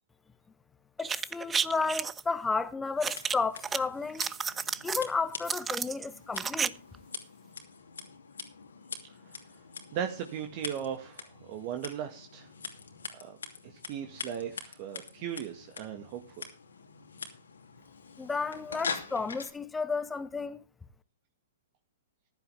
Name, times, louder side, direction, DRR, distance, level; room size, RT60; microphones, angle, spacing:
voice 1, 1.0-4.3 4.8-6.7 18.2-20.6, left 4 dB, 10° left, 1.1 m, -32 dB
sound 1, 1.0-2.2 3.0-3.8 4.1-5.0 5.5-6.7 6.9-7.0, right 6 dB, 15° right, 0.6 m, -31 dB
Scissors, 3.0-19.5, left 5 dB, 80° left, 2.7 m, -44 dB
voice 2, 9.9-12.5 13.1-13.4 13.9-16.5, right 9 dB, 45° right, 1.8 m, -37 dB
14.5 x 11.5 x 3.5 m
hypercardioid pair, 120°, 0 cm